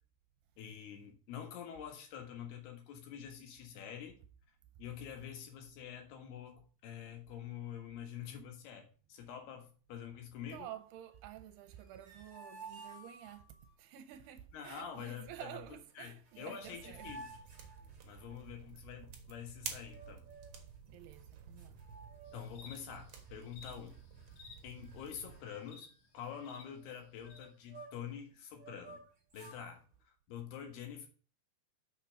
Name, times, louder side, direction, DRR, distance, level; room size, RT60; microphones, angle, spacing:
voice 1, 0.6-4.2 4.8-10.7 14.5-15.6 16.0-17.3 18.0-20.3 22.3-23.9 24.6-25.9 26.1-29.0 29.3-31.1, left 8 dB, 70° left, 3.4 m, -47 dB
voice 2, 10.5-13.5 13.8-17.1 18.1-18.2 20.9-21.8, right 12 dB, 80° right, 2.6 m, -50 dB
sound 1, 11.7-13.7 15.9-16.0 16.3-18.5 19.8-20.6 21.2-21.3 21.6-22.7 23.0-23.3 23.9-24.5 24.8-25.0 25.3-28.2 28.5-29.6, right 3 dB, 30° right, 1.8 m, -54 dB
sound 2, 16.6-25.4, right 6 dB, 60° right, 2.2 m, -51 dB
sound 3, 22.2-26.6 27.3-27.4, left 5 dB, 85° left, 1.2 m, -57 dB
6.7 x 5.7 x 6.9 m
omnidirectional pair, 4.9 m